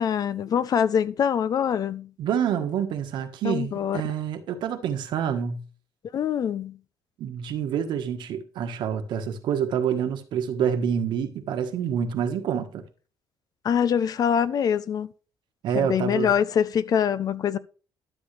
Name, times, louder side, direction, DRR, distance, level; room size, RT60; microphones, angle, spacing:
voice 1, 0.0-2.1 3.4-4.0 6.1-6.8 13.6-15.1 15.7-17.6, left 8 dB, 55° left, 0.6 m, -24 dB
voice 2, 2.2-5.6 7.2-12.8 15.6-16.3, right 8 dB, 75° right, 1.4 m, -27 dB
12.5 x 7.2 x 3.3 m
cardioid pair, 100°, 8 cm